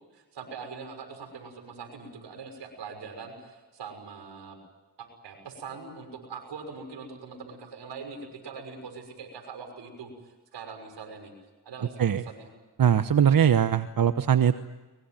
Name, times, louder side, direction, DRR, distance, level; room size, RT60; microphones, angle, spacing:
voice 1, 0.1-4.6 5.0-11.3 11.6-12.5, right 5 dB, 80° right, 5 dB, 6.3 m, -42 dB
voice 2, 12.8-14.6, right 8 dB, 55° right, 11 dB, 1.1 m, -21 dB
23.5 x 22.5 x 9.2 m, 1.2 s
supercardioid pair, 50°, 41 cm